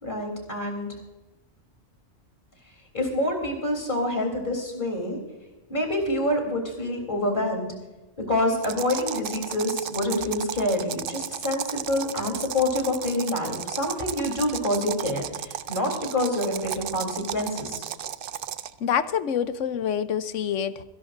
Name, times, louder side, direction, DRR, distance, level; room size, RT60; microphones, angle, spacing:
voice 1, 0.0-0.9 2.9-5.2 5.7-7.7 8.2-17.8, left 1 dB, 45° left, 2 dB, 3.7 m, -27 dB
sound 1, 8.6-18.8, right 10 dB, 60° right, 0.6 m, -34 dB
voice 2, 18.8-20.8, left 8 dB, 90° left, 13 dB, 1.1 m, -26 dB
26.0 x 11.0 x 2.6 m, 1.1 s
omnidirectional pair, 1.2 m